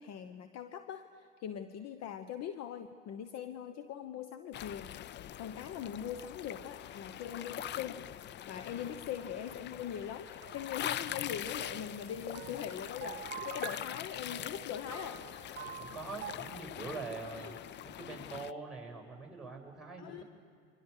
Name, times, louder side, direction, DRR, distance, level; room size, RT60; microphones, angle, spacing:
voice 1, 0.0-5.0 5.4-8.0 8.5-15.6 17.4-17.6 20.0-20.2, left 9 dB, 50° left, 9 dB, 1.2 m, -42 dB
sound 1, 4.5-18.5, left 11 dB, 35° left, 0.5 m, -43 dB
sound 2, 9.9-16.3, right 10 dB, 35° right, 1.7 m, -47 dB
voice 2, 15.8-17.6 17.8-20.2, right 4 dB, ahead, 1 dB, 6.9 m, -44 dB
29.0 x 24.5 x 6.7 m, 2.3 s
hypercardioid pair, 80°, 34 cm